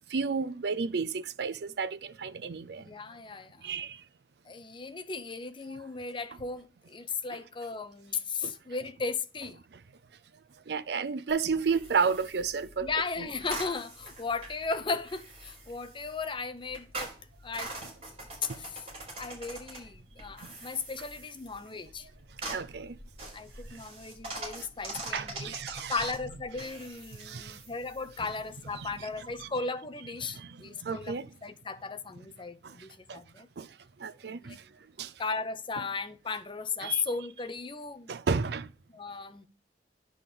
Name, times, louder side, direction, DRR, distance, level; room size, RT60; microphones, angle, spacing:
voice 1, 0.1-2.8 3.6-4.0 8.4-8.5 10.7-12.9 18.5-18.6 20.4-20.5 22.5-23.0 25.1-25.9 27.2-27.6 28.8-28.9 29.4-29.5 30.2-31.3 32.6-32.7 33.1-33.2 33.6-33.7 34.0-34.6 35.0-35.1 36.8-37.0 38.1-38.7, right 5 dB, 65° right, 0.5 m, -32 dB
voice 2, 2.8-3.7 4.5-9.6 12.8-17.1 17.4-17.7 18.4-18.9 19.2-22.1 23.3-25.6 25.9-33.5 34.2-34.6 35.2-38.2 38.9-39.5, left 4 dB, 30° left, 0.7 m, -36 dB
sound 1, 11.3-29.5, right 2 dB, 35° right, 4.4 m, -45 dB
10.0 x 3.8 x 6.8 m
head